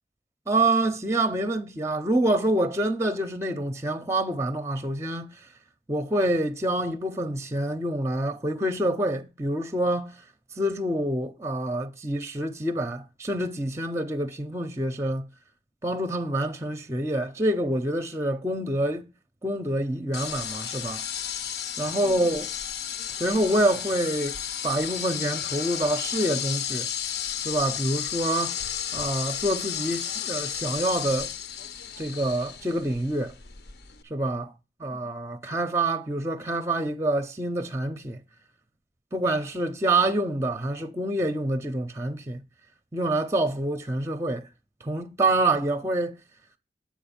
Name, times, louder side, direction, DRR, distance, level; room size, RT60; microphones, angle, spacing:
voice 1, 0.5-5.5 5.9-10.2 10.6-15.3 15.8-19.1 19.4-21.0 21.8-22.5 23.2-26.9 27.4-28.5 28.9-31.3 32.0-33.4 34.1-34.5 34.8-38.2 39.1-42.4 42.9-44.5 44.8-46.2, right 1 dB, 15° right, 0.5 m, -27 dB
sound 1, 20.1-34.0, left 9 dB, 65° left, 0.7 m, -33 dB
7.3 x 5.1 x 7.1 m
head